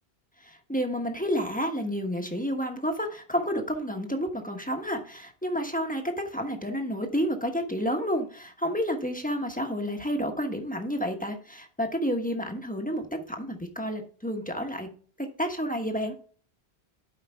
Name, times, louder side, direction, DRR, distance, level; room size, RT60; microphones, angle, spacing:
voice 1, 0.4-14.9 15.2-16.2, equal, 10° left, 4 dB, 1.1 m, -30 dB
12.0 x 5.0 x 3.5 m, 0.43 s
omnidirectional pair, 1.1 m